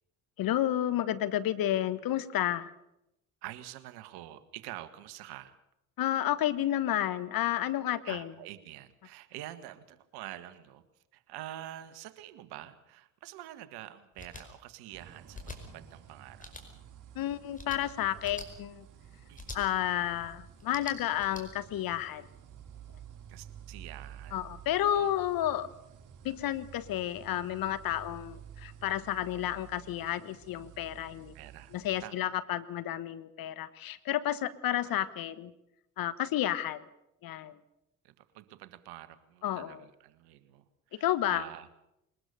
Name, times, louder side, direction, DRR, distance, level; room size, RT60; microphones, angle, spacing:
voice 1, 0.4-2.7 6.0-8.3 17.1-18.8 19.5-22.3 24.3-25.7 26.2-31.3 31.7-35.5 36.0-36.9 37.2-37.6 39.4-39.8 41.0-41.4, left 12 dB, 55° left, 15 dB, 1.3 m, -31 dB
voice 2, 3.4-5.6 8.0-10.8 11.1-16.5 19.3-19.6 23.3-24.4 24.9-25.1 31.3-31.8 32.0-32.4 34.7-35.0 38.0-41.7, right 14 dB, 70° right, 13 dB, 1.6 m, -47 dB
sound 1, 14.2-14.4 15.3-15.6 16.4-16.6 17.5-17.8 18.2-18.5 19.4-19.6 20.6-21.4, left 2 dB, 20° left, 5.2 m, -44 dB
sound 2, 14.9-32.1, right 9 dB, 50° right, 3.8 m, -52 dB
21.5 x 20.0 x 6.8 m, 0.86 s
hypercardioid pair, 55°, 41 cm